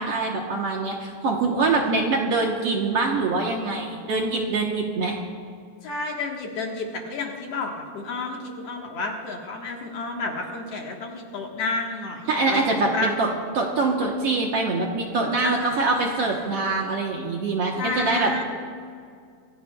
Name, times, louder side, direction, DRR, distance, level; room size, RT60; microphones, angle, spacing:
voice 1, 0.0-5.2 12.3-13.3 13.5-18.4, right 3 dB, 60° right, 0 dB, 1.8 m, -24 dB
voice 2, 5.8-13.1 15.4-16.7 17.8-18.4, left 3 dB, 60° left, 0 dB, 2.2 m, -31 dB
26.5 x 16.5 x 2.3 m, 2.2 s
omnidirectional pair, 3.6 m